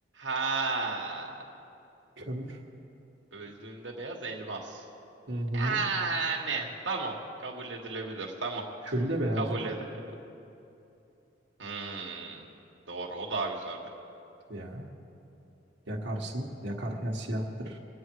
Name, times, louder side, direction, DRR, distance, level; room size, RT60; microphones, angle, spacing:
voice 1, 0.1-1.4 3.3-4.8 5.5-7.1 7.4-8.6 9.4-9.8 11.6-12.4 12.9-13.8, right 4 dB, 90° right, -1 dB, 1.6 m, -33 dB
voice 2, 2.2-2.6 5.3-5.8 8.8-9.5 14.5-14.9 15.9-17.8, right 1 dB, 75° right, -3 dB, 1.6 m, -32 dB
24.5 x 8.8 x 4.7 m, 2.7 s
head